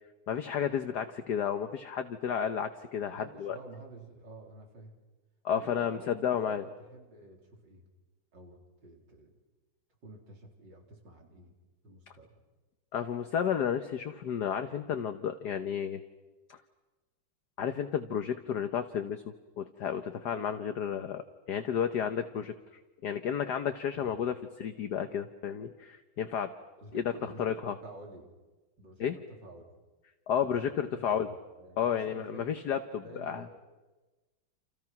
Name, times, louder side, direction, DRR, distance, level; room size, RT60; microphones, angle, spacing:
voice 1, 0.3-3.6 5.4-6.6 12.9-16.0 16.5-16.6 17.6-21.2 21.5-22.5 23.0-26.5 26.9-27.0 27.4-27.8 29.0-29.1 30.3-31.3 31.8-33.4, left 8 dB, 55° left, 8 dB, 1.5 m, -32 dB
voice 2, 3.1-5.0 5.5-7.9 8.3-9.4 10.0-11.5 11.8-12.4 23.9-24.2 26.8-28.3 28.8-29.8 30.4-32.6 33.0-33.6, right 2 dB, 55° right, 2 dB, 4.4 m, -50 dB
29.5 x 28.5 x 6.0 m, 1.2 s
omnidirectional pair, 2.3 m